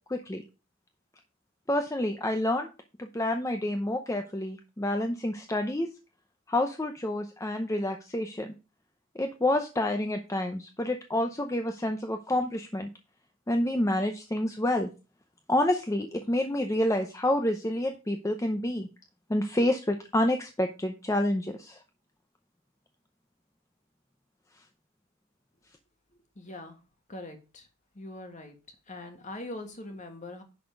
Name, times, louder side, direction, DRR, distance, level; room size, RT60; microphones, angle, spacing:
voice 1, 0.1-0.4 1.7-2.7 3.0-5.9 6.5-8.5 9.2-12.9 13.5-14.9 15.5-18.9 19.3-21.8, left 1 dB, 15° left, 5 dB, 0.6 m, -28 dB
voice 2, 26.3-26.8 27.1-27.7 27.9-28.6 28.9-30.4, left 2 dB, 35° left, 5 dB, 1.7 m, -42 dB
10.5 x 4.2 x 5.3 m, 0.32 s
head